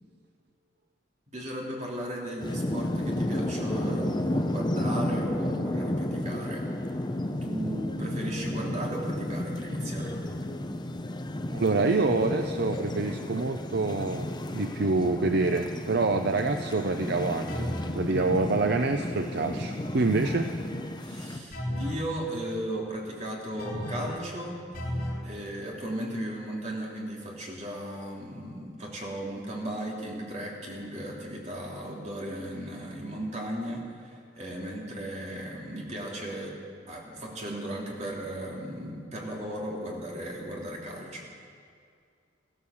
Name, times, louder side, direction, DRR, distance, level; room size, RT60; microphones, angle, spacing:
voice 1, 1.3-6.6 7.4-10.1 21.0-24.6 25.2-36.6 36.9-41.2, right 1 dB, 40° right, -2 dB, 3.0 m, -36 dB
sound 1, 2.4-21.4, left 1 dB, 25° left, 0.8 m, -32 dB
voice 2, 11.5-17.7 17.9-20.5, right 3 dB, 60° right, 7 dB, 0.6 m, -26 dB
sound 2, 17.5-18.0 21.5-22.1 23.6-24.2 24.7-25.3, left 1 dB, 50° left, 3.1 m, -33 dB
15.0 x 13.0 x 7.1 m, 2.3 s
head